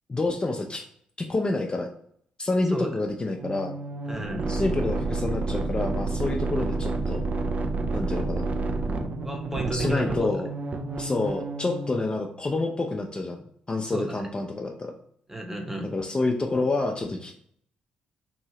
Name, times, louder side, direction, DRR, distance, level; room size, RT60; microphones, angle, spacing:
voice 1, 0.1-0.8 1.2-1.9 2.4-3.8 4.5-7.2 7.9-8.5 9.7-10.5 11.0-14.9 15.9-17.3, left 2 dB, 30° left, 2 dB, 0.5 m, -28 dB
sound 1, 3.4-12.0, right 3 dB, 45° right, 0.4 m, -29 dB
voice 2, 4.1-4.5 9.2-10.4 13.9-14.0 15.3-15.9, right 1 dB, 10° right, 2 dB, 0.8 m, -32 dB
2.8 x 2.7 x 3.1 m, 0.63 s
hypercardioid pair, 40°, 3 cm